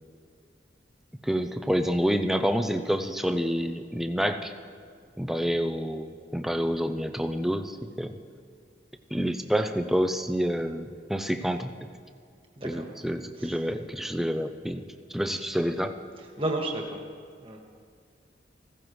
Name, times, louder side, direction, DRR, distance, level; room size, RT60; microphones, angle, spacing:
voice 1, 1.2-4.5 5.2-8.2 9.1-11.7 12.6-14.8 15.1-15.9, equal, ahead, 7 dB, 0.5 m, -28 dB
voice 2, 12.6-12.9 13.4-13.5 16.2-17.0 17.4-17.6, right 1 dB, 30° right, 1 dB, 1.6 m, -32 dB
15.5 x 15.0 x 3.1 m, 2.1 s
head